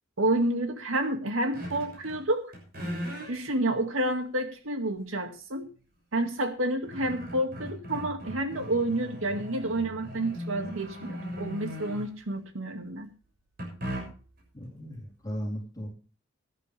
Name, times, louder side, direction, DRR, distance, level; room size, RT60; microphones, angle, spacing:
voice 1, 0.2-2.5 3.3-5.7 6.1-13.1, right 1 dB, 85° right, 5 dB, 2.1 m, -29 dB
sound 1, 1.5-2.2 2.5-3.3 4.0-4.1 6.2-6.3 6.6-12.3 13.6-14.4, equal, 50° right, 6.7 m, -38 dB
voice 2, 14.5-15.9, equal, 20° left, -3 dB, 3.9 m, -36 dB
18.0 x 11.0 x 3.4 m, 0.36 s
head